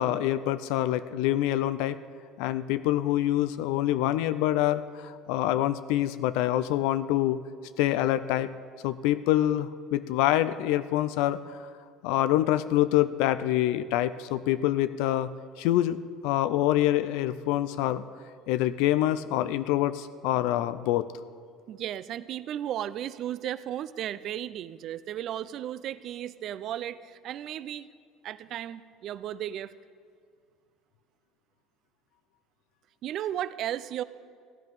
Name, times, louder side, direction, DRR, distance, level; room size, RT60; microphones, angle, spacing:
voice 1, 0.0-2.0 2.4-7.4 7.8-8.5 8.8-11.6 12.0-15.3 15.6-18.0 18.5-21.1, left 13 dB, 75° left, 14 dB, 0.4 m, -26 dB
voice 2, 21.7-27.9 28.2-29.7 33.0-34.0, right 11 dB, 45° right, 16 dB, 0.4 m, -35 dB
15.0 x 10.5 x 5.3 m, 2.1 s
cardioid pair, 145°, 0 cm